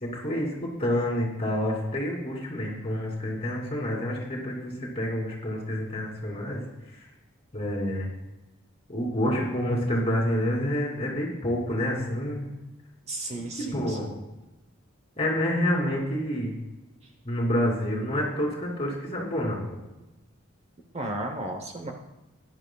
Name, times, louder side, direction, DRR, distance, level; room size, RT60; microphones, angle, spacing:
voice 1, 0.0-6.6 6.9-7.0 7.5-8.1 8.9-12.5 13.3-14.2 15.2-16.6 17.2-19.6, equal, 25° left, -2 dB, 2.9 m, -28 dB
voice 2, 13.1-14.1 20.9-21.9, right 1 dB, 30° right, 3 dB, 0.9 m, -34 dB
16.0 x 11.0 x 2.3 m, 1.0 s
head